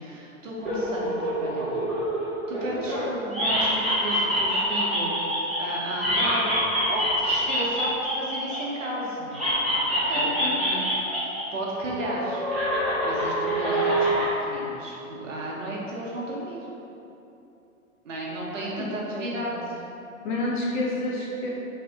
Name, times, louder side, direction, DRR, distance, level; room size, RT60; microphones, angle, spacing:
voice 1, 0.0-1.9 2.5-6.6 6.9-9.4 9.9-10.8 11.1-12.4 13.0-16.7 18.0-19.8, right 1 dB, 60° right, -4 dB, 1.1 m, -33 dB
sound 1, 0.6-3.0 3.3-8.8 9.3-11.4 11.7-14.3, equal, ahead, 1.2 m, -26 dB
voice 2, 10.2-10.6 18.6-19.7 20.2-21.5, left 2 dB, 35° left, -3 dB, 0.7 m, -30 dB
3.7 x 3.4 x 3.6 m, 2.9 s
figure-of-eight pair, 115°, 42 cm